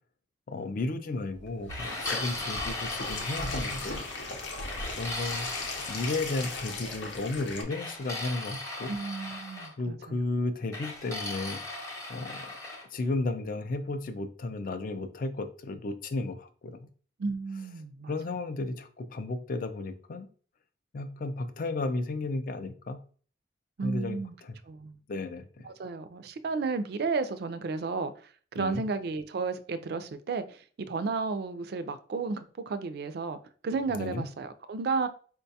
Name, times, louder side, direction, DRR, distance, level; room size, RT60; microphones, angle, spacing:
voice 1, 0.5-4.0 5.0-8.9 9.8-11.6 12.1-12.5 12.9-16.8 18.1-20.3 20.9-23.0 23.8-24.5 25.1-25.7 28.5-28.8 33.9-34.2, left 2 dB, 45° left, 0.4 m, -34 dB
sound 1, 1.3-7.6, left 2 dB, 85° left, 0.7 m, -37 dB
sound 2, 1.7-4.2 4.7-6.6 7.7-9.7 10.7-12.9, left 2 dB, 15° left, 0.7 m, -38 dB
voice 2, 8.9-10.2 17.2-18.2 23.8-24.3 24.7-25.0 25.7-28.1 28.5-30.6 30.9-33.4 33.6-35.1, right 4 dB, 55° right, 0.3 m, -32 dB
4.6 x 2.2 x 2.7 m
head